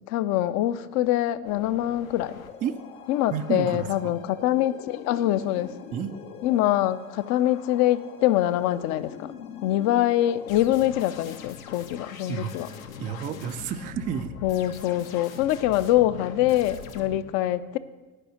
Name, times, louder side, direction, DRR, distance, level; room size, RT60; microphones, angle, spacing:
voice 1, 0.1-2.4 3.1-5.7 6.4-9.3 9.6-12.7 14.4-17.8, left 13 dB, 40° left, 15 dB, 0.5 m, -24 dB
sound 1, 1.4-17.2, left 7 dB, 70° left, 1.0 m, -43 dB
voice 2, 3.3-4.2 5.9-6.1 12.3-12.5 13.0-14.3, right 8 dB, 20° right, 10 dB, 0.3 m, -30 dB
9.8 x 5.5 x 6.8 m, 1.2 s
figure-of-eight pair, 75°, 43 cm